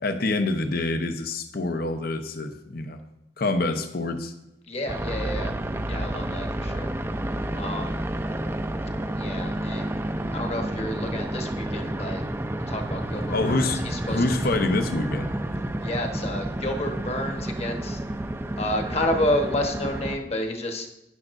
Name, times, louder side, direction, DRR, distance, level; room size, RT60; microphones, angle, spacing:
voice 1, 0.0-3.0 3.4-4.3 13.3-13.8 14.1-15.3, left 2 dB, 55° left, 8 dB, 0.8 m, -26 dB
voice 2, 4.7-5.5 5.9-6.9 7.5-8.0 9.2-10.0 10.3-12.2 12.7-14.2 15.8-18.0 18.6-20.9, left 1 dB, 35° left, 3 dB, 1.2 m, -30 dB
sound 1, 4.9-20.2, right 1 dB, 15° right, 0.5 m, -30 dB
12.5 x 9.9 x 2.6 m, 0.90 s
head